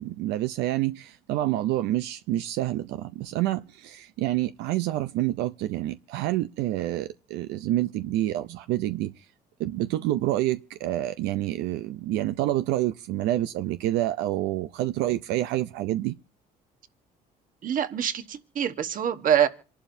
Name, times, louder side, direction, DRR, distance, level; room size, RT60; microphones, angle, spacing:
voice 1, 0.0-9.1 9.6-16.2, right 15 dB, 90° right, 0.5 m, -28 dB
voice 2, 17.6-19.5, right 9 dB, 55° right, 1.2 m, -25 dB
27.0 x 11.5 x 2.7 m
cardioid pair, 110°, 17 cm